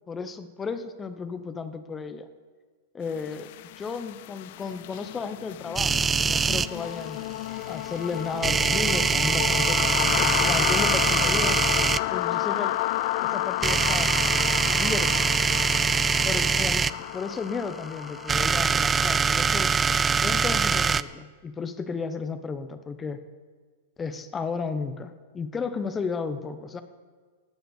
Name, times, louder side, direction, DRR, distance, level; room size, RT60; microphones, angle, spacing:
voice 1, 0.1-2.3 2.9-7.2 7.7-11.6 12.1-12.8 13.2-14.1 14.7-15.3 16.2-19.7 20.2-23.2 24.0-26.8, left 5 dB, 20° left, 10 dB, 0.9 m, -33 dB
sound 1, 3.2-20.9, left 17 dB, 60° left, 0.4 m, -31 dB
sound 2, 5.8-6.7 8.4-12.0 13.6-16.9 18.1-21.0, right 5 dB, 15° right, 0.4 m, -23 dB
13.0 x 7.9 x 8.3 m, 1.5 s
hypercardioid pair, 120°, 0 cm